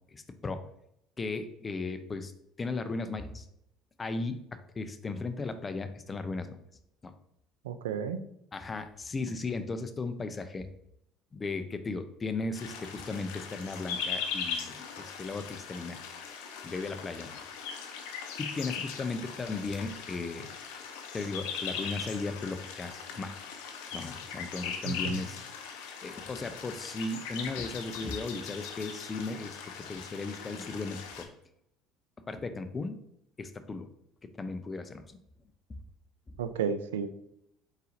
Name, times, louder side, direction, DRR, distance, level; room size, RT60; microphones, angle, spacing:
voice 1, 0.1-0.7 1.2-2.3 2.6-3.5 4.0-4.5 4.8-6.6 7.0-7.1 8.5-10.7 11.3-16.0 16.6-17.5 18.4-20.5 21.1-23.3 23.9-25.4 26.0-31.3 32.3-33.0 33.4-33.9 34.2-35.0 36.3-36.4, left 3 dB, 30° left, 9 dB, 0.5 m, -36 dB
voice 2, 7.6-8.2 24.8-25.2 36.4-37.1, right 7 dB, 85° right, 11 dB, 0.3 m, -32 dB
sound 1, 12.5-31.2, left 6 dB, 80° left, 0.6 m, -40 dB
4.0 x 4.0 x 2.5 m, 0.77 s
hypercardioid pair, 70°, 0 cm